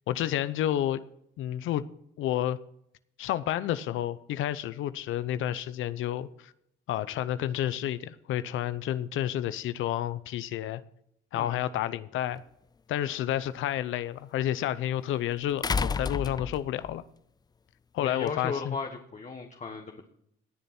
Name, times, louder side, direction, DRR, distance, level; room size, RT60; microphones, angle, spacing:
voice 1, 0.1-1.0 1.4-1.8 2.2-2.6 3.2-6.5 6.9-10.8 11.3-12.4 12.9-17.0 17.9-18.7, left 12 dB, 85° left, 0.7 m, -30 dB
voice 2, 11.3-11.6 18.0-20.1, left 4 dB, 35° left, 1.5 m, -36 dB
sound 1, 12.4-12.5 15.6-16.9 18.3-18.4, left 5 dB, 20° left, 0.3 m, -30 dB
18.5 x 6.9 x 4.3 m
cardioid pair, 90°, 20 cm